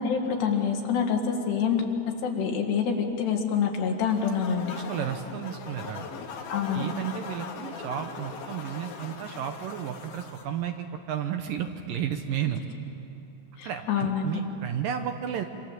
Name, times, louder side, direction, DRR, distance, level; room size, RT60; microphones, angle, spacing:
voice 1, 0.0-1.8 2.2-4.8 6.5-6.8 13.6-14.4, left 6 dB, 85° left, 2 dB, 4.2 m, -26 dB
sound 1, 4.0-10.4, left 6 dB, 70° left, 3.5 m, -40 dB
voice 2, 4.7-6.1 6.7-12.6 13.6-15.4, right 9 dB, 70° right, 6 dB, 2.3 m, -33 dB
26.5 x 25.5 x 7.5 m, 2.8 s
omnidirectional pair, 4.7 m